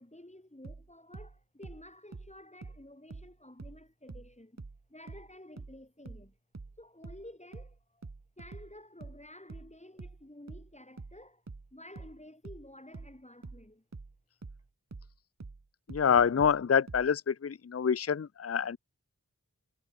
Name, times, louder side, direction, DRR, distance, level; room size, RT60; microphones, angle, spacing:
voice 1, 0.0-6.4 6.8-8.1 8.4-11.4 11.7-13.8, left 1 dB, 20° left, 4.4 m, -52 dB
sound 1, 0.6-3.8 4.1-17.1, right 3 dB, 50° right, 1.5 m, -47 dB
voice 2, 15.9-18.8, left 7 dB, 45° left, 0.5 m, -26 dB
wide cardioid pair, 50°, 34 cm